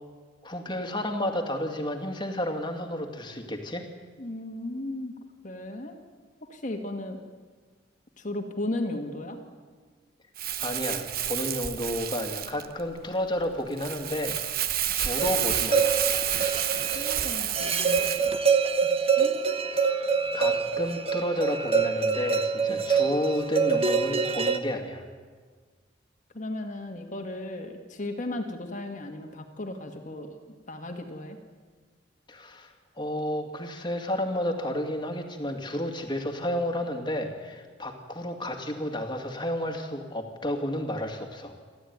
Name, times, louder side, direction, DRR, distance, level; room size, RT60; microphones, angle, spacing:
voice 1, 0.4-3.9 10.6-16.0 20.3-25.0 32.3-41.5, left 1 dB, 25° left, 5 dB, 2.3 m, -31 dB
voice 2, 4.2-5.1 5.4-6.0 6.4-7.2 8.2-9.4 16.9-18.2 19.2-19.5 22.7-22.8 26.3-30.4 30.7-31.4, left 1 dB, 40° left, 4 dB, 1.8 m, -35 dB
Crumpling crinkling, 10.4-18.3, right 11 dB, 50° right, 1.0 m, -30 dB
sound 1, 15.2-24.6, right 5 dB, 30° right, 1.2 m, -26 dB
29.0 x 12.5 x 9.5 m, 1.5 s
head